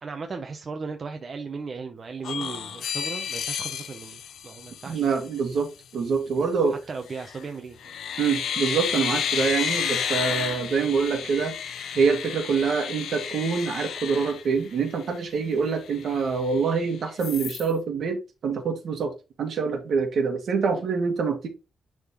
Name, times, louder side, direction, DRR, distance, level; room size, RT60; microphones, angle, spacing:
voice 1, 0.0-5.0 6.7-7.9, right 4 dB, 35° right, 0.7 m, -36 dB
sound 1, 2.2-5.3 7.1-7.4 7.8-15.1 15.5-15.6 15.9-16.8 17.2-17.7, left 8 dB, 75° left, 0.9 m, -31 dB
voice 2, 4.9-6.8 8.2-11.5 11.9-19.1 19.4-21.5, right 5 dB, 55° right, 1.8 m, -25 dB
10.5 x 3.7 x 3.0 m
wide cardioid pair, 170°, 0 cm